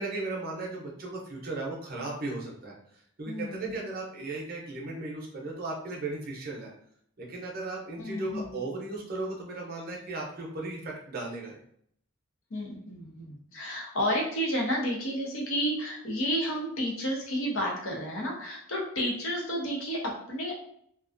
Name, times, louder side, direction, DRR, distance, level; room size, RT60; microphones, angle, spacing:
voice 1, 0.0-6.7 7.2-11.6, right 2 dB, 45° right, -2 dB, 0.6 m, -36 dB
voice 2, 3.2-3.7 8.0-8.5 12.5-20.6, equal, 70° left, -2 dB, 0.7 m, -31 dB
2.4 x 2.2 x 2.5 m, 0.67 s
head